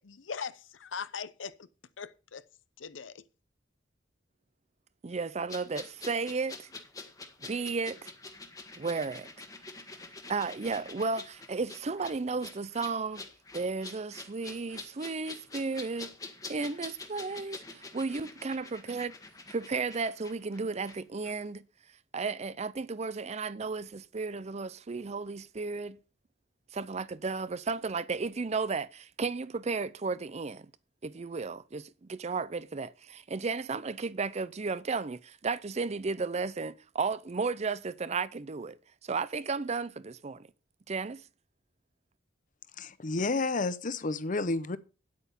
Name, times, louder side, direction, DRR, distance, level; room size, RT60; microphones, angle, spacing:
voice 1, 0.0-1.7 2.0-2.4 2.8-3.2, left 6 dB, 85° left, 0.7 m, -40 dB
voice 2, 5.0-6.7 7.5-8.1 8.8-9.3 10.3-13.2 13.5-16.1 16.5-19.1 19.5-21.7 22.1-26.0 26.7-30.7 31.0-40.5 40.9-41.2, right 4 dB, 35° right, 0.5 m, -34 dB
sound 1, 5.5-21.0 21.2-21.4, left 3 dB, 20° left, 1.5 m, -46 dB
voice 3, 42.8-44.8, left 3 dB, 45° left, 0.7 m, -30 dB
9.5 x 8.4 x 5.3 m
head